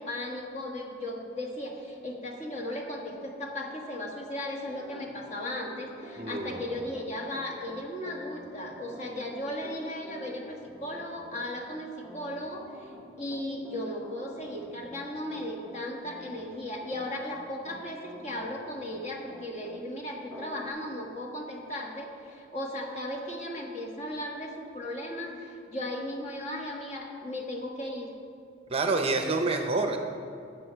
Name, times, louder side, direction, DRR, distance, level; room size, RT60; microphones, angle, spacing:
voice 1, 0.0-12.9 13.2-28.1, left 1 dB, 35° left, 0 dB, 1.4 m, -36 dB
Piano, 4.6-19.8 20.3-20.7, left 1 dB, ahead, 0.9 m, -47 dB
voice 2, 6.2-6.6 28.7-30.0, right 3 dB, 30° right, 5 dB, 0.6 m, -27 dB
13.0 x 8.2 x 4.5 m, 2.5 s
head